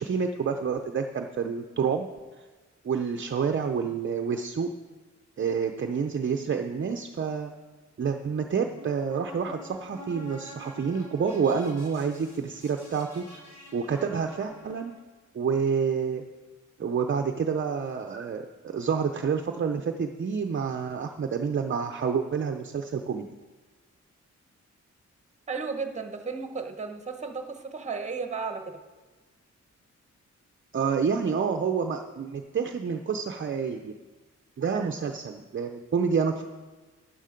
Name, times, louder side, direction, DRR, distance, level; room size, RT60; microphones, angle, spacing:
voice 1, 0.0-2.1 2.8-4.7 5.4-7.5 8.0-13.2 13.7-14.9 15.3-16.2 16.8-23.3 30.7-33.9 34.6-36.4, right 6 dB, 40° right, 4 dB, 0.6 m, -28 dB
sound 1, 8.8-14.9, left 1 dB, 85° left, 3.3 m, -47 dB
voice 2, 25.5-28.8, right 4 dB, 25° right, 6 dB, 1.0 m, -34 dB
12.5 x 9.0 x 5.1 m, 1.3 s
wide cardioid pair, 155°, 30 cm